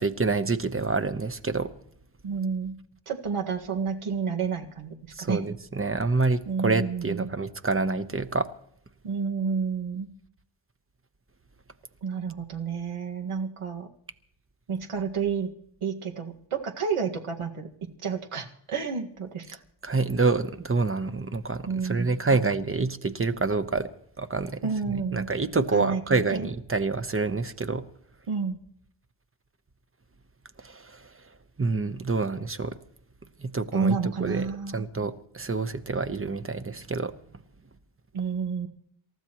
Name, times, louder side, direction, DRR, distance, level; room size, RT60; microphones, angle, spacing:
voice 1, 0.0-1.7 5.1-8.5 19.8-23.9 24.2-27.8 30.6-31.1 31.6-32.8 33.4-37.1, right 3 dB, 25° right, 1.0 m, -27 dB
voice 2, 2.2-2.8 3.1-5.4 6.5-7.3 9.0-10.1 12.0-13.9 14.7-15.5 15.8-17.7 18.0-19.5 21.7-22.1 24.6-25.3 25.7-26.5 28.3-28.6 33.7-34.8 38.1-38.7, right 5 dB, 85° right, 1.9 m, -30 dB
28.0 x 14.0 x 3.0 m
wide cardioid pair, 100°, 49 cm